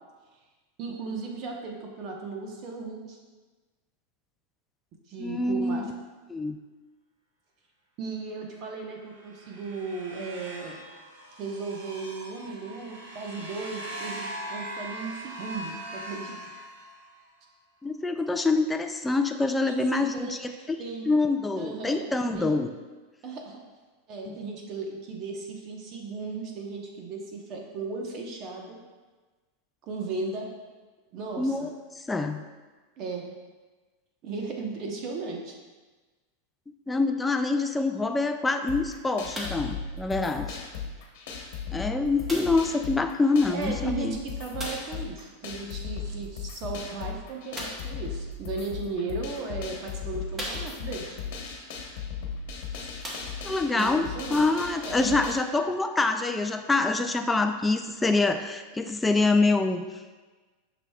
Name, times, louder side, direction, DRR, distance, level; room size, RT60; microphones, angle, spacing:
voice 1, 0.8-3.2 5.1-5.9 8.0-10.8 11.4-16.4 19.6-21.1 21.6-22.1 22.3-22.5 23.2-23.6 24.1-28.8 29.9-30.5 31.1-31.7 33.0-33.2 34.2-35.6 43.5-51.2 53.7-54.4 54.8-55.2, right 3 dB, 40° right, 1 dB, 1.0 m, -36 dB
voice 2, 5.2-5.9 6.3-6.6 17.8-20.8 21.1-22.7 24.3-24.4 31.4-31.7 32.0-32.4 36.9-40.6 41.7-44.2 53.4-59.8, left 3 dB, 10° left, 6 dB, 0.3 m, -25 dB
sound 1, 9.0-17.3, right 1 dB, 85° right, 1.3 m, -41 dB
sound 2, 38.7-55.3, left 6 dB, 60° left, 1.1 m, -37 dB
sound 3, 39.3-39.7 40.6-40.7 42.3-42.7 44.6-45.0 47.5-48.0 48.9-49.0 49.6-49.7 50.3-51.0 52.3-52.4 52.9-53.7 54.5-54.6, equal, 15° right, 1.2 m, -37 dB
7.6 x 6.0 x 2.3 m, 1.3 s
supercardioid pair, 150°, 0 cm